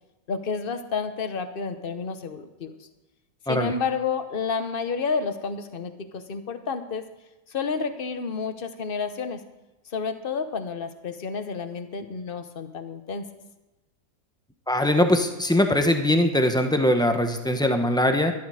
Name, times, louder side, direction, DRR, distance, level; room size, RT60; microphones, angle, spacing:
voice 1, 0.3-2.7 3.5-7.0 7.5-9.4 9.9-13.3, left 5 dB, 40° left, 9 dB, 0.9 m, -30 dB
voice 2, 14.7-18.3, left 1 dB, 5° left, 5 dB, 0.3 m, -21 dB
12.5 x 12.5 x 4.9 m, 1.0 s
omnidirectional pair, 1.9 m